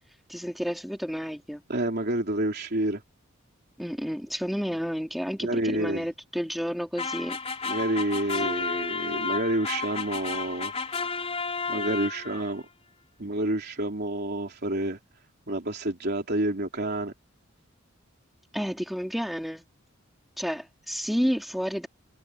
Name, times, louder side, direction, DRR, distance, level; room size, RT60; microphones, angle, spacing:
voice 1, 0.3-1.6 3.8-7.4 18.5-19.6 20.4-21.9, equal, ahead, 2.5 m, -30 dB
voice 2, 1.7-3.0 5.4-6.1 7.6-10.7 11.7-12.7 13.2-15.0 15.5-17.1, right 1 dB, 50° right, 3.6 m, -29 dB
sound 1, 7.0-12.5, left 4 dB, 30° left, 3.1 m, -32 dB
head